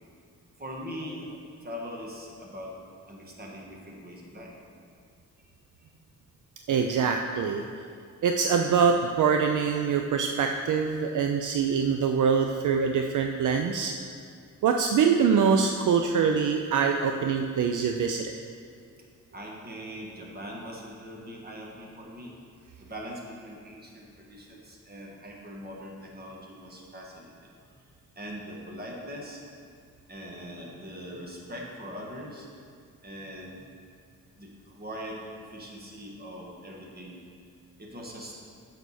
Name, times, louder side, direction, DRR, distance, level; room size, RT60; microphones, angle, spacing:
voice 1, 0.6-2.7 3.1-4.5 19.3-22.3 22.8-27.5 28.1-29.4 30.1-32.5 33.0-33.6 34.4-37.2 37.8-38.3, equal, 30° right, -2 dB, 1.6 m, -41 dB
voice 2, 6.7-7.7 8.2-13.9 14.6-18.3, right 6 dB, 65° right, 4 dB, 0.5 m, -24 dB
9.2 x 6.7 x 4.3 m, 2.2 s
cardioid pair, 110°, 33 cm